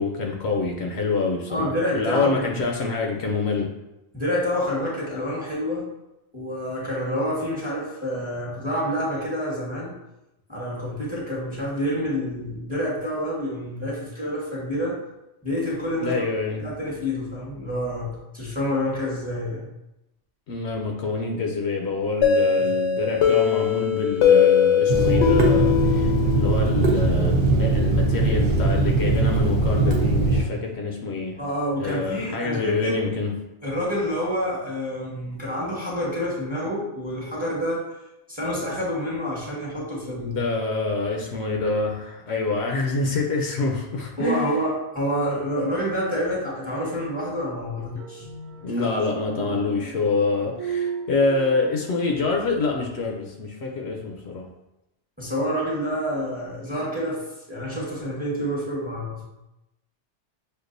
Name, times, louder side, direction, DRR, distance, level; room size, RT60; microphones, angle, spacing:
voice 1, 0.0-1.7 1.9-3.7 15.9-16.6 20.5-31.4 31.8-33.3 40.2-44.5 48.6-54.5, left 3 dB, 70° left, 0 dB, 0.8 m, -26 dB
voice 2, 1.5-2.8 4.1-5.9 6.3-10.0 10.5-15.0 15.4-16.2 16.5-19.6 22.6-22.7 31.4-33.0 33.6-37.9 38.3-40.4 44.2-48.3 48.6-49.2 55.2-59.2, equal, 10° right, -6 dB, 1.1 m, -28 dB
sound 1, 22.2-26.9, left 8 dB, 85° left, 1.0 m, -20 dB
Water tap faucet / Sink (filling or washing), 24.9-30.4, right 3 dB, 50° right, 0.8 m, -21 dB
sound 2, 48.0-52.9, right 5 dB, 85° right, 0.9 m, -35 dB
6.5 x 2.4 x 2.5 m, 0.93 s
omnidirectional pair, 1.2 m